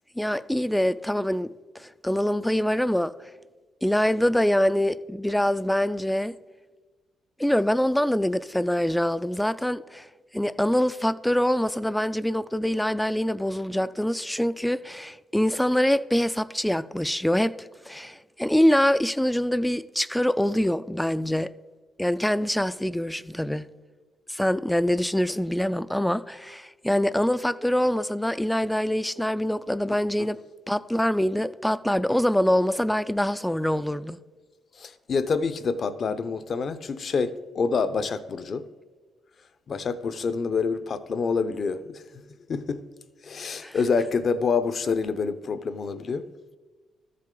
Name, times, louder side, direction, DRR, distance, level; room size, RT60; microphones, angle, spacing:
voice 1, 0.2-1.5 1.8-3.1 3.8-6.3 7.4-10.1 10.3-17.5 17.9-21.5 22.0-23.7 24.3-30.4 30.7-34.2 43.6-43.8, equal, 5° left, 0.3 m, -24 dB
voice 2, 34.8-38.7 39.7-42.2 42.5-42.8 43.2-46.2, left 5 dB, 50° left, 0.6 m, -27 dB
13.0 x 7.6 x 3.8 m
cardioid pair, 90°, 0 cm